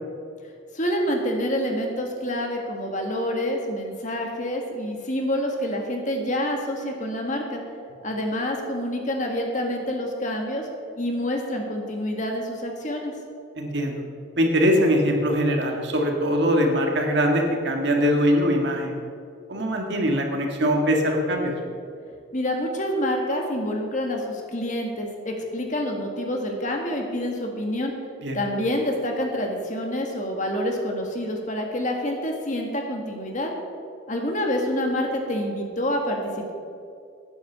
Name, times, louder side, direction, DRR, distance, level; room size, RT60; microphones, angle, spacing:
voice 1, 0.7-7.6 8.0-10.7 11.0-13.1 22.3-27.9 28.3-33.5 34.1-36.5, left 1 dB, 40° left, 2 dB, 1.7 m, -27 dB
voice 2, 13.6-14.0 14.4-18.9 19.5-21.5 28.2-28.4, equal, 60° right, 2 dB, 1.7 m, -22 dB
10.0 x 8.7 x 7.2 m, 2.4 s
head